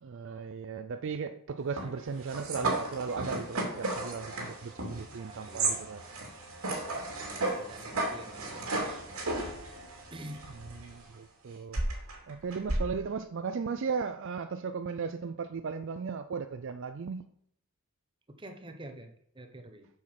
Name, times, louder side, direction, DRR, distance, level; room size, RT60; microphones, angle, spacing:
voice 1, 0.0-6.0 10.7-11.8 12.3-17.2, right 5 dB, 55° right, 0.4 m, -36 dB
sound 1, 1.8-11.0 11.7-12.8, right 2 dB, 75° right, 2.7 m, -34 dB
voice 2, 5.2-6.2 7.2-9.2 10.1-10.4 18.4-19.9, right 1 dB, 20° right, 1.0 m, -48 dB
7.5 x 6.5 x 5.9 m
head